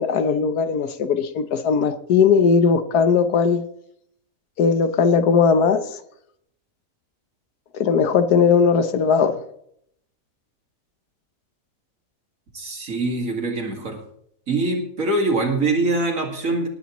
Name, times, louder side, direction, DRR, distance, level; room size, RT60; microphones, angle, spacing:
voice 1, 0.0-3.6 4.6-5.9 7.7-9.4, left 6 dB, 90° left, 10 dB, 1.5 m, -18 dB
voice 2, 12.5-14.0 14.5-16.7, right 2 dB, 60° right, 2 dB, 2.5 m, -23 dB
20.0 x 11.5 x 3.1 m, 0.71 s
omnidirectional pair, 1.6 m